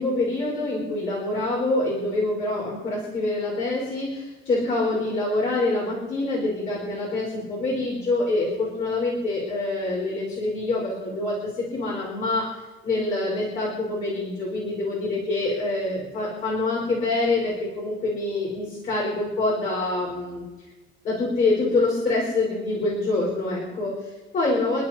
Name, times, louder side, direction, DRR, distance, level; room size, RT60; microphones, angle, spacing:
voice 1, 0.0-20.4 21.0-24.8, left 2 dB, 40° left, -5 dB, 4.5 m, -26 dB
28.5 x 11.0 x 2.9 m, 1.2 s
cardioid pair, 175°, 21 cm